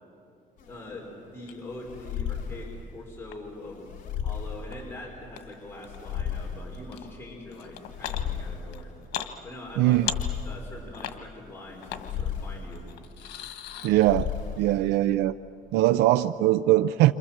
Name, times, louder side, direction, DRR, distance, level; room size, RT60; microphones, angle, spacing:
sound 1, 0.6-15.1, left 7 dB, 50° left, 3.6 m, -36 dB
voice 1, 0.7-8.9 9.4-10.0 10.4-12.9, left 2 dB, 15° left, -2 dB, 4.7 m, -43 dB
sound 2, 1.4-1.6 2.1-3.3 4.7-4.8 5.3-6.2 6.7-7.1 7.5-8.2 8.7-9.3 9.6-10.7 10.9-11.2 11.8-12.1 12.7-14.3, left 10 dB, 80° left, 1.6 m, -37 dB
voice 2, 9.8-10.1 13.8-14.3 14.6-15.4 15.7-17.1, right 15 dB, 85° right, 12 dB, 0.5 m, -21 dB
29.0 x 26.5 x 7.4 m, 2.7 s
cardioid pair, 110°, 17 cm